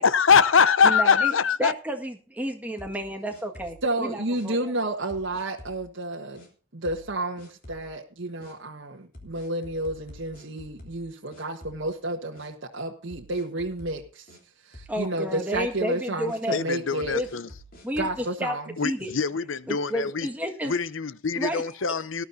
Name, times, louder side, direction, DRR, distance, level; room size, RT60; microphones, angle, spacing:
voice 1, 0.0-1.7 16.5-17.5 18.8-20.3 20.6-22.2, left 6 dB, 85° left, 0.7 m, -23 dB
voice 2, 0.8-1.3 1.6-4.6 14.9-16.6 17.1-17.3 17.8-18.6 18.8-19.1 19.7-20.7 21.3-21.6, equal, 10° right, 1.7 m, -31 dB
sound 1, 2.8-3.9 4.3-4.5 5.1-5.8 6.3-6.5 6.8-7.1 7.4-7.9 8.4-8.5 9.1-11.1 11.3-12.0 12.3-12.5 13.1-14.4 14.7-15.0 15.3-15.8 16.3-16.4 17.0-18.3, equal, 45° left, 3.4 m, -48 dB
voice 3, 3.8-6.4 6.7-14.3 14.6-17.2 18.0-18.7, right 2 dB, 70° right, 1.5 m, -31 dB
19.0 x 12.0 x 2.7 m
head